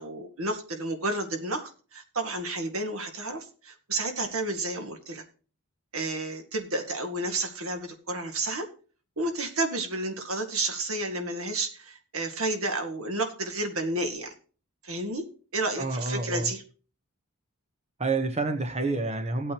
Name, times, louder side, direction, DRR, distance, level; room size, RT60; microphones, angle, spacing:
voice 1, 0.0-5.2 5.9-8.7 9.2-14.3 14.8-15.3 15.5-16.6, right 2 dB, 70° right, 5 dB, 2.1 m, -31 dB
voice 2, 15.8-16.5 18.0-19.5, right 3 dB, 30° right, 5 dB, 1.0 m, -28 dB
16.5 x 8.8 x 3.0 m, 0.38 s
head